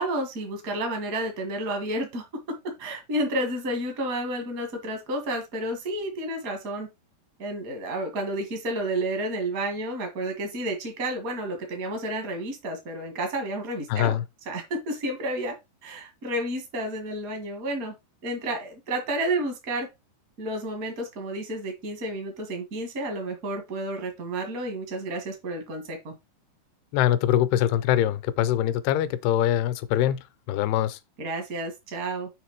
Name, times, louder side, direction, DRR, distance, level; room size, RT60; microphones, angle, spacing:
voice 1, 0.0-6.9 7.4-14.2 14.4-15.5 15.8-17.9 18.2-19.9 20.4-26.1 31.2-32.3, right 1 dB, 70° right, 0.8 m, -31 dB
voice 2, 13.9-14.2 26.9-31.0, left 12 dB, 85° left, 2.6 m, -23 dB
7.2 x 3.3 x 4.6 m
omnidirectional pair, 4.6 m